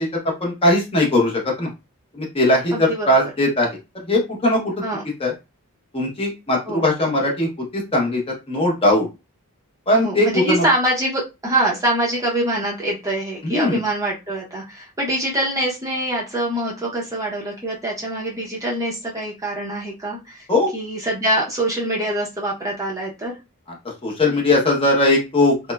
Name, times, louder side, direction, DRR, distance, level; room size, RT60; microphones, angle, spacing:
voice 1, 0.4-1.7 2.2-3.8 4.1-4.6 5.2-5.3 5.9-7.5 7.7-8.2 8.5-9.1 9.9-10.7 13.4-13.8 20.5-20.7 24.0-25.5, left 1 dB, 25° left, -1 dB, 0.7 m, -19 dB
voice 2, 2.7-3.3 4.8-5.0 6.7-6.9 10.0-20.5 20.7-23.3, right 1 dB, 15° right, -4 dB, 0.6 m, -24 dB
2.9 x 2.1 x 2.2 m, 0.25 s
head